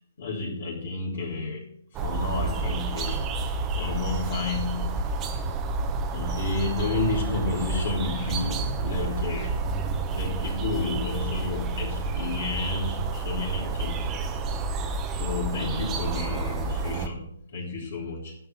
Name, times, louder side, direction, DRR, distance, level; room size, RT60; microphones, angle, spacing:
voice 1, 0.2-1.7 2.0-3.3 3.6-5.3 6.1-9.6 10.1-14.2 15.2-18.3, left 3 dB, 65° left, -5 dB, 3.2 m, -31 dB
sound 1, 1.9-17.1, right 3 dB, 20° right, 1.0 m, -29 dB
10.0 x 5.6 x 7.3 m, 0.68 s
hypercardioid pair, 135°, 0 cm